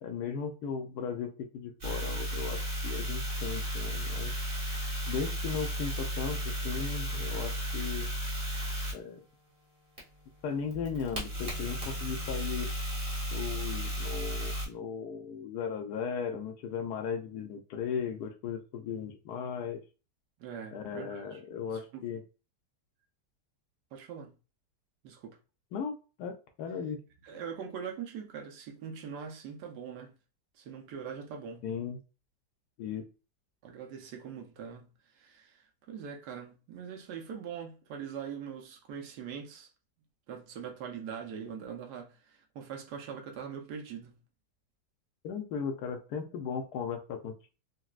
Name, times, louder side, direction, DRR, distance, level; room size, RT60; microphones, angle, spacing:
voice 1, 0.0-4.4 5.1-8.1 8.9-9.2 10.4-12.7 13.3-19.8 20.7-22.2 25.7-27.0 31.6-32.0 32.8-33.0 45.2-47.5, left 6 dB, 75° left, 1.0 m, -37 dB
sound 1, 1.8-8.9 10.0-14.7, equal, 25° right, 1.0 m, -34 dB
voice 2, 20.4-21.4 21.7-22.1 23.9-24.3 25.0-25.4 27.2-30.1 30.5-31.7 33.6-39.7 40.3-44.2, right 7 dB, 75° right, 1.2 m, -42 dB
4.0 x 2.1 x 2.3 m
omnidirectional pair, 1.9 m